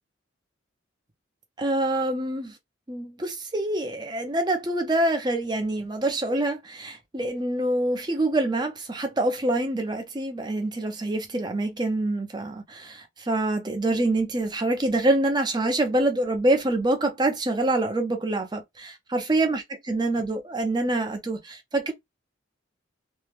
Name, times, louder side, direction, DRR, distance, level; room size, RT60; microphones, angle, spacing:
voice 1, 1.6-2.6 2.9-21.9, right 2 dB, 20° right, 0.5 m, -26 dB
2.6 x 2.1 x 3.2 m
head